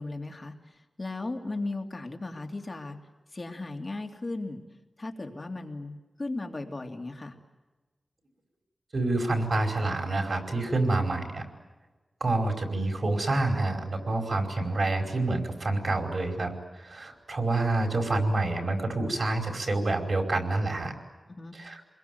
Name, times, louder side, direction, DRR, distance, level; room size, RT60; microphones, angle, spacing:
voice 1, 0.0-3.0 3.3-4.6 5.0-7.4 21.3-21.5, left 2 dB, 35° left, 4 dB, 2.8 m, -36 dB
voice 2, 8.9-11.4 12.2-20.9 21.5-21.8, right 2 dB, 55° right, 4 dB, 5.0 m, -28 dB
27.5 x 22.0 x 9.4 m, 1.2 s
wide cardioid pair, 110°, 0 cm